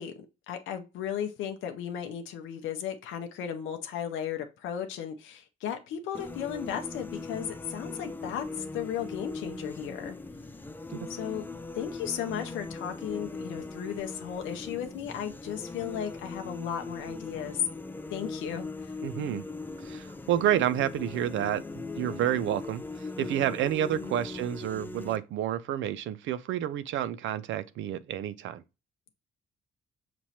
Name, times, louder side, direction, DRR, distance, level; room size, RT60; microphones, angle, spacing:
voice 1, 0.0-10.2 11.1-11.4 11.7-17.7 18.1-18.9 24.0-24.2, left 9 dB, 90° left, 0.6 m, -35 dB
sound 1, 6.1-25.2, left 3 dB, 10° left, 0.4 m, -40 dB
voice 2, 19.0-19.4 19.8-28.6, right 11 dB, 75° right, 0.4 m, -30 dB
5.9 x 3.0 x 2.8 m
cardioid pair, 90°, 20 cm